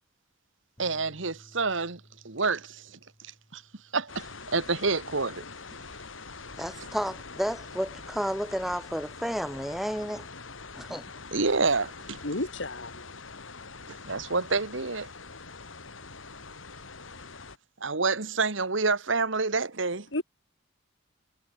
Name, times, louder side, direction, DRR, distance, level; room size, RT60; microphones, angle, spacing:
Bass guitar, 0.8-7.0, equal, 20° left, 6.4 m, -59 dB
voice 1, 0.8-2.8 3.5-3.6 3.9-5.4 6.8-6.9 11.3-12.2 13.9-15.1 17.8-20.1, right 4 dB, 75° right, 1.8 m, -28 dB
sound 1, 4.1-17.6, left 4 dB, 90° left, 3.0 m, -44 dB
voice 2, 6.6-10.3 10.8-11.0, equal, ahead, 2.0 m, -32 dB
voice 3, 12.2-13.1 20.1-20.2, left 1 dB, 65° left, 3.0 m, -32 dB
head